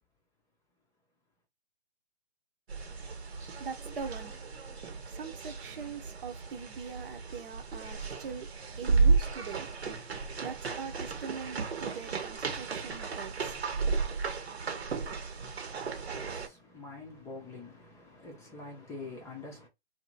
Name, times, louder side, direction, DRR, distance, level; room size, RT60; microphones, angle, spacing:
sound 1, 2.7-16.5, right 4 dB, 75° right, 1.2 m, -33 dB
voice 1, 3.0-14.0, right 6 dB, 55° right, 1.0 m, -43 dB
voice 2, 15.3-19.7, left 3 dB, 10° left, 0.6 m, -46 dB
2.9 x 2.8 x 2.4 m
hypercardioid pair, 135°, 32 cm